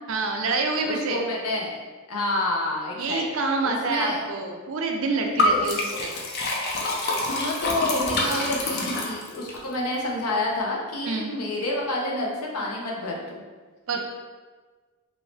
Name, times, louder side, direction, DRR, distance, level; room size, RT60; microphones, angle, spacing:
voice 1, 0.1-1.2 3.0-6.1 8.2-8.5 11.0-11.3 13.9-14.0, right 3 dB, 60° right, 2 dB, 0.4 m, -27 dB
voice 2, 0.8-1.7 2.1-3.2 3.6-4.2 5.6-6.0 7.1-13.4, left 2 dB, 80° left, -2 dB, 0.7 m, -29 dB
Liquid, 5.4-9.6, left 2 dB, 45° left, 0.4 m, -26 dB
2.9 x 2.7 x 3.2 m, 1.4 s
head